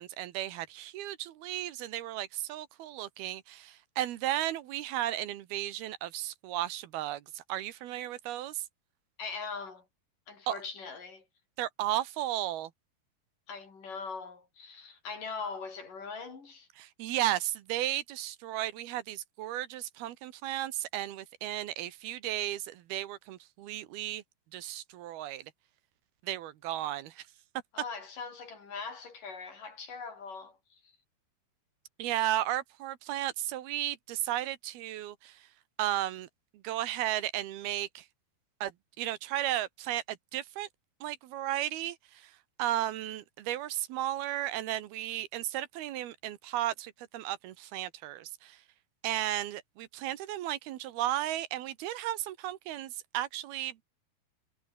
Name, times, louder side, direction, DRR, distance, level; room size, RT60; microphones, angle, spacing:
voice 1, 0.0-8.7 10.5-10.6 11.6-12.7 16.8-24.2 24.5-25.5 26.2-27.3 32.0-35.5 35.8-36.3 36.5-38.1 38.6-38.7 39.0-40.7 41.0-48.6 49.0-53.8, right 13 dB, 75° right, 3.1 m, -34 dB
voice 2, 9.2-9.9 10.3-11.2 13.5-16.7 27.7-30.9, left 5 dB, 55° left, 6.5 m, -41 dB
omnidirectional pair, 4.7 m